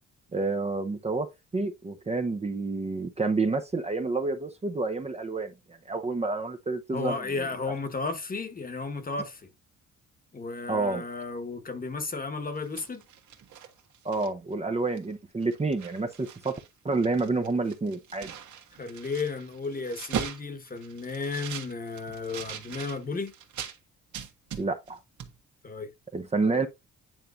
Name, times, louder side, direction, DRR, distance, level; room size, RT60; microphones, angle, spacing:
voice 1, 0.3-1.3 1.5-7.2 10.7-11.0 14.0-16.6 16.8-18.3 24.6-25.0 26.1-26.7, right 3 dB, 20° right, 0.8 m, -29 dB
voice 2, 6.9-9.5 10.3-13.0 18.8-23.3 25.6-25.9, left 4 dB, 30° left, 1.3 m, -33 dB
sound 1, 12.5-14.5 15.0-15.1 15.4-16.7 16.9-23.8 24.1-24.9 25.2-25.3, right 8 dB, 70° right, 1.6 m, -40 dB
9.1 x 4.4 x 2.6 m
cardioid pair, 90°, 30 cm